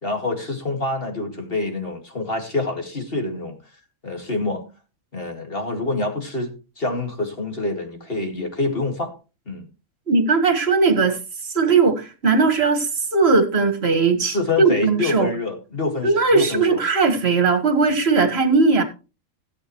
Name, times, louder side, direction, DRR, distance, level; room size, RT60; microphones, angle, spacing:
voice 1, 0.0-3.6 4.0-4.7 5.1-6.5 6.8-9.1 9.5-9.7 14.3-16.8, left 3 dB, 40° left, 2.4 m, -26 dB
voice 2, 10.1-11.2 11.5-15.3 16.0-18.8, right 4 dB, 45° right, 2.0 m, -18 dB
16.5 x 8.5 x 3.1 m
omnidirectional pair, 1.5 m